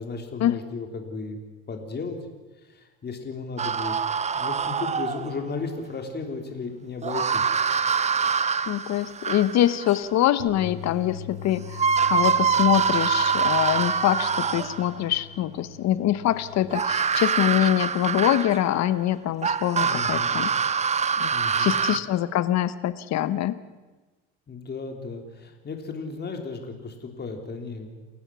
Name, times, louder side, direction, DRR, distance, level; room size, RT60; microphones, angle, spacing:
voice 1, 0.0-1.4 1.7-2.2 2.7-4.0 4.3-7.6 19.8-20.4 21.3-21.8 24.5-27.9, left 4 dB, 30° left, 4 dB, 3.5 m, -35 dB
sound 1, 3.6-5.5 7.0-10.0 11.3-11.4 11.7-15.0 16.7-18.8 19.4-22.0, right 6 dB, 20° right, 0.8 m, -25 dB
voice 2, 8.7-20.5 21.2-21.3 21.6-23.6, left 12 dB, 50° left, 14 dB, 1.3 m, -24 dB
Bass guitar, 10.4-16.6, left 9 dB, 70° right, 6.3 m, -42 dB
28.5 x 15.5 x 6.3 m, 1.2 s
supercardioid pair, 100°, 36 cm